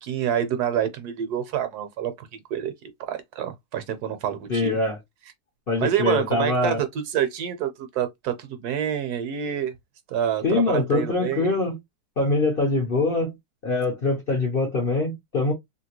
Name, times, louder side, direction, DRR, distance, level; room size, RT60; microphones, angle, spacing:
voice 1, 0.0-2.7 3.1-4.8 5.8-9.7 10.1-11.5, right 9 dB, 70° right, 1.1 m, -27 dB
voice 2, 4.5-5.0 5.7-6.8 10.4-11.8 12.2-13.4 13.6-15.5, left 3 dB, 45° left, 0.7 m, -23 dB
2.8 x 2.8 x 2.8 m
omnidirectional pair, 1.8 m